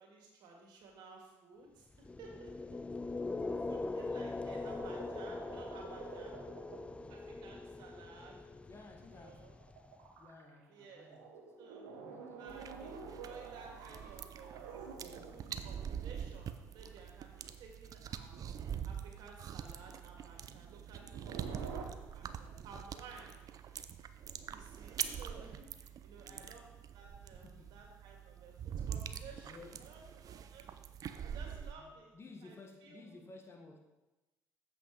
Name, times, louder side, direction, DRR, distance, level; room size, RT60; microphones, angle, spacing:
voice 1, 0.0-2.8 3.4-6.4 7.1-8.4 9.1-9.5 10.7-11.1 11.6-11.9 12.4-12.9 13.2-14.9 15.2-18.4 18.8-23.4 24.5-28.5 28.9-30.7 31.2-32.1 32.4-32.6 32.8-33.1, right 4 dB, 65° right, 2.2 m, -55 dB
sound 1, 1.9-10.0, left 3 dB, 15° left, 0.4 m, -42 dB
sound 2, 4.5-7.1 7.8-7.9 8.2-8.3 8.6-16.0 17.7-17.8 18.7-19.1 20.3-21.8, right 5 dB, 85° right, 1.2 m, -50 dB
voice 2, 8.6-9.6 10.2-11.6 11.9-14.2 26.3-26.7 27.2-28.0 29.4-30.0 30.4-30.7 31.8-33.8, left 3 dB, 35° left, 1.5 m, -57 dB
sound 3, 12.5-31.7, right 8 dB, 50° right, 0.6 m, -44 dB
8.0 x 5.8 x 4.8 m
hypercardioid pair, 65°, 8 cm